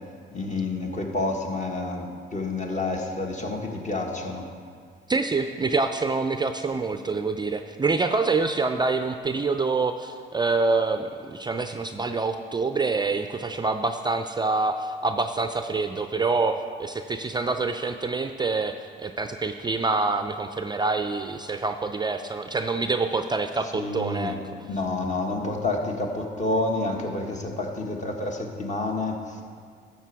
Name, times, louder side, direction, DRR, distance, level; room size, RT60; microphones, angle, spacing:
voice 1, 0.3-4.5 23.6-24.4 24.7-29.4, left 2 dB, 40° left, 2 dB, 1.5 m, -29 dB
voice 2, 5.1-24.4, right 3 dB, 20° right, 8 dB, 0.4 m, -26 dB
12.0 x 7.0 x 4.7 m, 2.1 s
cardioid pair, 90°, 20 cm